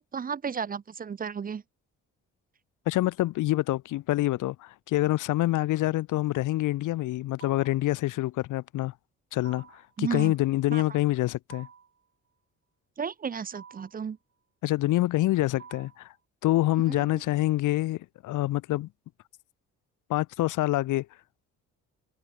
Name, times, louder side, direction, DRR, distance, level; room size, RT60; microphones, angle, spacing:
voice 1, 0.0-1.6 10.0-10.3 10.7-10.8 13.0-14.2 16.9-17.2, right 6 dB, 30° right, 0.6 m, -33 dB
voice 2, 2.9-8.9 9.3-11.7 14.6-16.1 16.4-18.9 20.1-21.1, left 16 dB, 85° left, 1.1 m, -26 dB
sound 1, 7.4-7.9 9.4-9.9 11.5-12.0 13.5-14.0 15.6-16.1, right 7 dB, 45° right, 5.1 m, -49 dB
cardioid pair, 90°, 30 cm